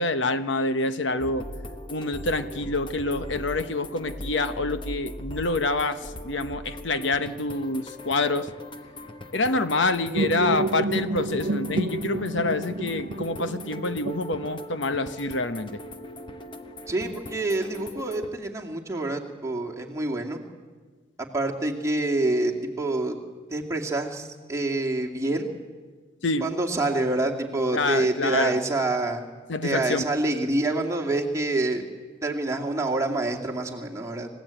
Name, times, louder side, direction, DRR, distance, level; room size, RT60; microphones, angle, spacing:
voice 1, 0.0-1.5 1.9-8.5 9.3-15.8 26.2-26.5 27.7-28.6 29.5-30.0, left 2 dB, 70° left, 10 dB, 1.0 m, -27 dB
sound 1, 1.2-18.3, left 1 dB, 25° left, 1.1 m, -40 dB
sound 2, 4.8-20.2, right 1 dB, 45° left, 7.1 m, -56 dB
sound 3, 10.1-14.9, right 2 dB, 65° right, 0.7 m, -30 dB
voice 2, 16.9-20.4 21.2-22.5 22.8-23.2 23.5-25.5 26.4-29.2 29.6-31.8 32.2-34.3, right 2 dB, 15° right, 0 dB, 2.3 m, -27 dB
27.5 x 16.0 x 8.9 m, 1.5 s
head